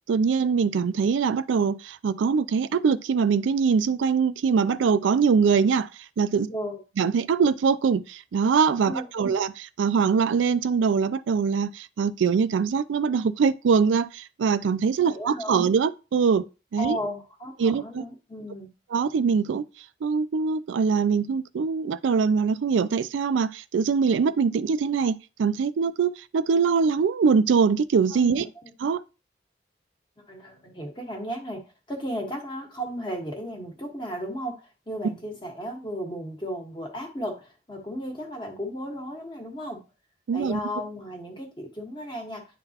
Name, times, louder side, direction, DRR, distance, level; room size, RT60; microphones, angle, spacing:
voice 1, 0.1-5.9 6.2-6.5 7.0-9.5 9.8-16.4 16.7-17.0 17.6-18.0 18.9-19.7 20.0-28.5 28.8-29.0 40.3-40.6, right 5 dB, 90° right, 0.4 m, -23 dB
voice 2, 6.5-6.8 8.8-9.3 15.0-15.6 16.8-18.7 28.1-28.7 30.2-34.6 34.9-39.8 40.3-42.5, equal, 25° left, 1.4 m, -35 dB
9.9 x 3.9 x 2.8 m
head